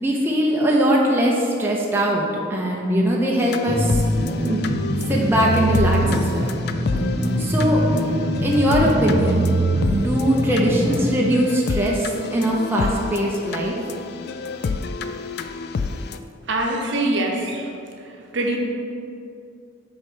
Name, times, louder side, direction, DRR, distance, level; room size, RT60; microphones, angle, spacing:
voice 1, 0.0-4.0 4.5-4.6 5.1-6.5 7.4-7.8 8.4-9.5 9.9-13.8, equal, 10° right, -3 dB, 0.7 m, -21 dB
sound 1, 3.4-16.2, left 4 dB, 50° left, 0.3 m, -30 dB
sound 2, 3.7-11.1, right 1 dB, 25° right, 1.4 m, -23 dB
voice 2, 16.4-17.7 18.3-18.6, right 1 dB, 60° right, 1 dB, 0.9 m, -23 dB
6.2 x 4.7 x 6.2 m, 2.6 s
head